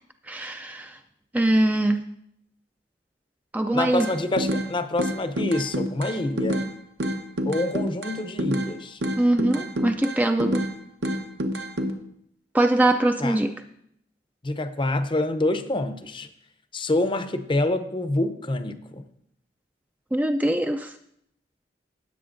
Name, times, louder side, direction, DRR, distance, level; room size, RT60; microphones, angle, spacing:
voice 1, 0.3-1.0 1.3-2.0 3.5-4.1 9.2-10.7 12.5-13.5 20.1-20.9, right 1 dB, 10° right, 6 dB, 0.4 m, -22 dB
voice 2, 3.7-6.7 7.5-9.0 13.2-13.4 14.4-16.3 16.7-19.0, left 2 dB, 30° left, 9 dB, 0.6 m, -26 dB
sound 1, 4.0-4.7 5.0-6.7 7.0-8.7 9.0-10.7 11.0-11.9, equal, 70° right, 1.0 m, -27 dB
16.5 x 7.8 x 2.6 m, 0.73 s
head